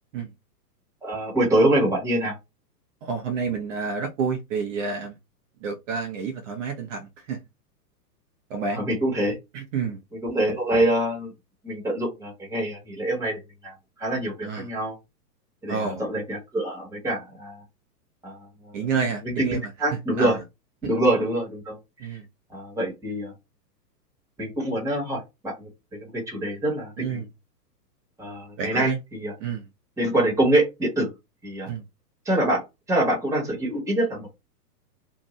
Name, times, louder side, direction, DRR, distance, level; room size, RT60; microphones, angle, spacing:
voice 1, 1.0-2.3 8.7-9.4 10.1-11.3 11.6-15.0 15.6-17.6 18.2-18.9 19.2-20.4 20.8-22.1 22.5-23.3 24.4-27.2 28.2-29.3 30.0-31.1 31.4-31.7 32.2-34.3, right 1 dB, 5° right, 1.2 m, -25 dB
voice 2, 3.0-5.1 5.6-7.4 8.5-8.8 9.5-10.0 14.4-14.7 15.7-16.0 18.7-19.7 20.2-20.4 20.8-20.9 22.0-22.3 27.0-27.2 28.6-29.0 29.4-29.6 31.7-31.8, right 5 dB, 50° right, 0.7 m, -29 dB
2.7 x 2.4 x 3.1 m
hypercardioid pair, 125°, 49 cm